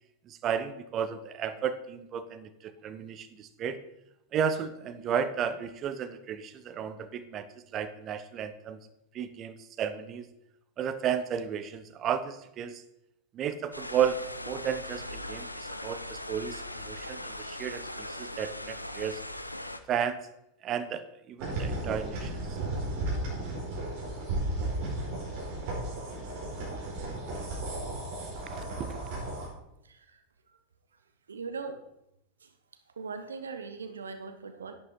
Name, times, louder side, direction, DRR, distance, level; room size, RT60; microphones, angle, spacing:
voice 1, 0.2-3.8 4.3-8.8 9.1-10.3 10.8-12.8 13.3-19.2 19.9-20.3 20.6-22.6 28.5-29.0, right 8 dB, 30° right, 12 dB, 0.9 m, -33 dB
Spring Fed Creek Further Down, 13.7-19.8, left 1 dB, 85° left, 0.7 m, -40 dB
sound 1, 21.4-29.5, right 2 dB, 50° right, 4.7 m, -34 dB
voice 2, 29.8-30.6 31.3-31.8 32.4-32.5 32.9-34.7, right 4 dB, 70° right, 9 dB, 1.0 m, -40 dB
11.0 x 8.8 x 4.3 m, 0.84 s
figure-of-eight pair, 90°, 0 cm